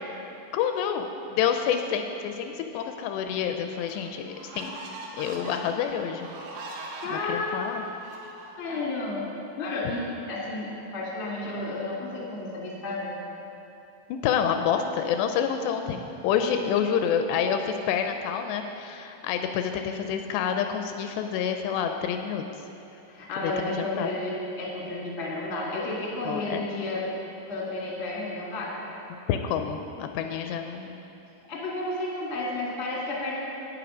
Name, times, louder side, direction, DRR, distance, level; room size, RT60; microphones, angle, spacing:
voice 1, 0.5-4.8 5.2-6.3 7.1-7.8 14.1-22.4 23.4-24.1 26.3-26.6 29.3-31.0, left 8 dB, 85° left, 6 dB, 2.5 m, -28 dB
sound 1, 3.2-3.3 3.9-8.9, right 2 dB, 85° right, 3.5 m, -42 dB
voice 2, 7.0-7.7 8.6-9.2 9.6-13.1 23.1-27.0 27.5-28.7 30.5-30.6 31.5-33.4, left 2 dB, 45° left, -4 dB, 0.9 m, -32 dB
11.0 x 9.1 x 5.0 m, 2.9 s
omnidirectional pair, 5.1 m